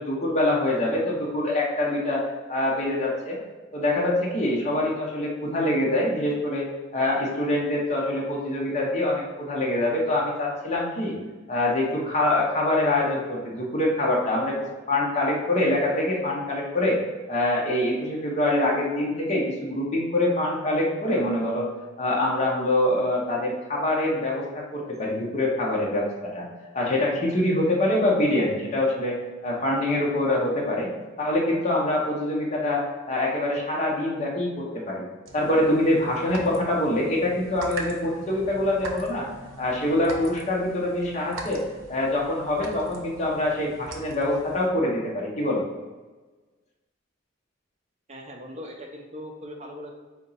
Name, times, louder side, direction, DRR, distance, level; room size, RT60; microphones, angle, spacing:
voice 1, 0.0-2.2 2.5-3.4 3.7-11.1 11.5-14.6 14.9-17.0 17.3-21.7 22.0-26.5 26.7-29.2 29.4-30.9 31.2-35.1 35.3-39.3 39.6-41.6 41.9-45.6, left 1 dB, 35° left, -3 dB, 0.8 m, -25 dB
sound 1, 35.3-44.7, right 2 dB, 75° right, 0.7 m, -41 dB
voice 2, 48.1-49.9, equal, 35° right, 1 dB, 0.6 m, -39 dB
4.3 x 2.9 x 4.0 m, 1.3 s
head